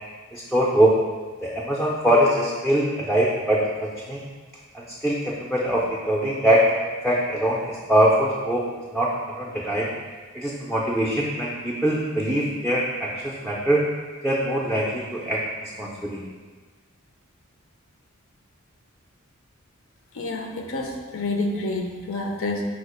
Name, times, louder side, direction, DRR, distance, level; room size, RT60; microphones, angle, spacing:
voice 1, 0.3-0.9 1.4-4.2 4.7-6.6 7.0-8.6 8.9-9.9 10.3-13.8 14.2-16.2, right 1 dB, ahead, -5 dB, 0.4 m, -23 dB
voice 2, 20.1-22.6, left 2 dB, 65° left, 2 dB, 0.6 m, -28 dB
4.3 x 2.4 x 4.8 m, 1.4 s
head